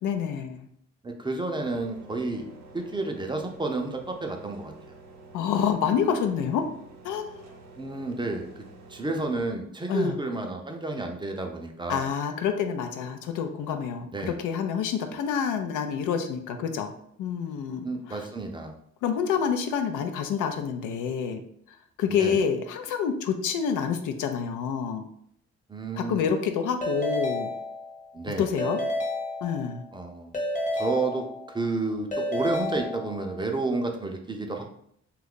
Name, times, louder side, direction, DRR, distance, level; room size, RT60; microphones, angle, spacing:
voice 1, 0.0-0.7 5.3-6.6 7.0-7.5 9.9-10.2 11.9-16.9 17.2-18.3 19.0-21.4 22.0-25.0 25.9-27.5 28.4-28.8 29.4-29.8, left 7 dB, 90° left, 7 dB, 0.5 m, -28 dB
voice 2, 1.0-2.4 2.7-4.9 7.8-8.5 8.9-12.1 14.1-14.4 17.8-18.7 22.1-22.4 25.7-26.3 28.1-28.5 29.9-30.4 30.7-34.6, right 3 dB, 15° right, 3 dB, 0.4 m, -31 dB
sound 1, 1.6-9.4, right 3 dB, 60° right, 0.7 m, -49 dB
Keyboard (musical) / Ringtone, 26.8-28.2 28.6-29.9 30.3-31.7 32.1-33.5, left 1 dB, 25° left, 0.7 m, -31 dB
2.6 x 2.3 x 3.6 m, 0.68 s
cardioid pair, 90°, 30 cm